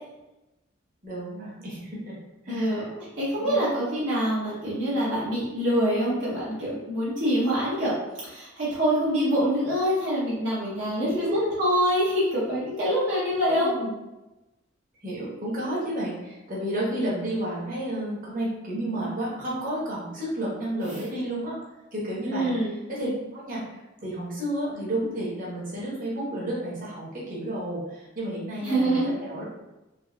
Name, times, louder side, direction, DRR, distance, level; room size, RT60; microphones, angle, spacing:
voice 1, 1.0-2.1 2.4-2.9 3.4-3.6 11.0-11.5 13.5-13.9 15.0-21.6 21.9-22.5 22.9-29.4, right 1 dB, 45° right, -6 dB, 1.2 m, -31 dB
voice 2, 2.5-8.0 8.2-13.7 20.8-21.0 22.2-22.8 28.6-29.1, equal, 60° right, -8 dB, 1.0 m, -25 dB
4.0 x 2.7 x 2.3 m, 1.0 s
head